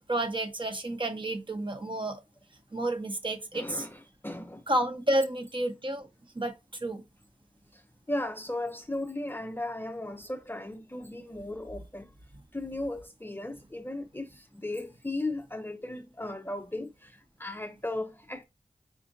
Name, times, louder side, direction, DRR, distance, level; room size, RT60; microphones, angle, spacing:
voice 1, 0.1-2.2 2.7-3.8 4.7-6.1 6.3-7.0, right 1 dB, 40° right, 1.0 m, -30 dB
voice 2, 3.5-4.6 8.1-12.1 12.5-14.3 14.5-17.1 17.4-18.4, left 1 dB, 15° left, 0.5 m, -36 dB
4.9 x 2.6 x 2.6 m
wide cardioid pair, 60°, 14 cm